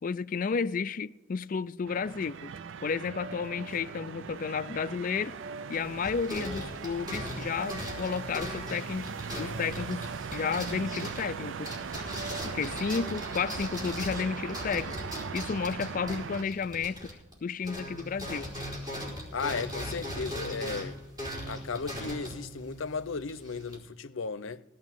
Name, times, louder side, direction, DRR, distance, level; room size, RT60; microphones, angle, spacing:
voice 1, 0.0-2.5 2.8-5.4 5.7-11.7 12.4-15.0 15.3-18.5, left 5 dB, 45° left, 0.4 m, -32 dB
sound 1, 1.9-16.4, right 6 dB, 70° right, 0.4 m, -39 dB
sound 2, 5.7-17.4 17.6-23.8, equal, 20° right, 4.9 m, -39 dB
voice 2, 19.3-21.0 21.5-24.6, left 5 dB, 75° left, 0.6 m, -35 dB
17.5 x 6.1 x 9.1 m
head